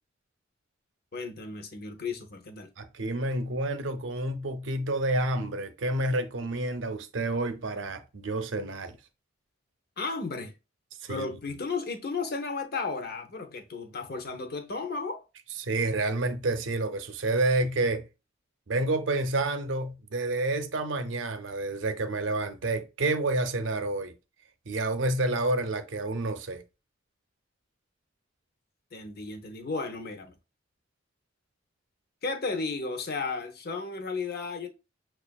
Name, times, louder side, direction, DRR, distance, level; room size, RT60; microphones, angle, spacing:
voice 1, 1.1-2.7 10.0-10.6 11.1-15.2 28.9-30.3 32.2-34.7, left 4 dB, 55° left, 0.7 m, -34 dB
voice 2, 2.8-9.0 11.0-11.2 15.6-18.1 18.7-24.1 24.7-26.6, right 2 dB, 70° right, 0.6 m, -29 dB
6.7 x 2.4 x 2.2 m
head